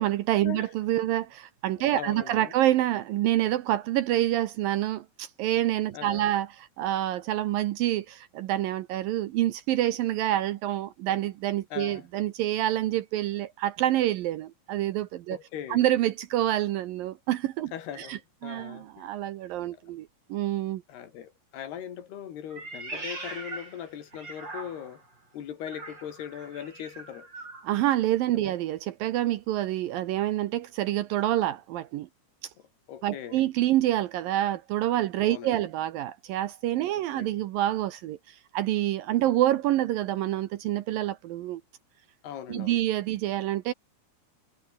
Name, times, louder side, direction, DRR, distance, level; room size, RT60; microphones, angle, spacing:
voice 1, 0.0-6.5 6.8-15.4 15.7-17.7 18.0-20.8 27.6-32.1 32.4-32.5 33.0-41.6 42.5-43.7, right 14 dB, 75° right, 2.3 m, -27 dB
voice 2, 1.9-2.5 5.9-6.3 11.7-12.1 15.3-15.9 17.7-19.1 19.7-19.8 20.9-25.0 25.3-27.3 28.3-28.5 32.9-33.5 35.2-35.7 36.9-37.4 42.2-42.8, left 9 dB, 75° left, 4.5 m, -40 dB
Meow, 22.5-25.1 25.6-27.7, right 2 dB, 25° right, 6.7 m, -41 dB
omnidirectional pair, 4.8 m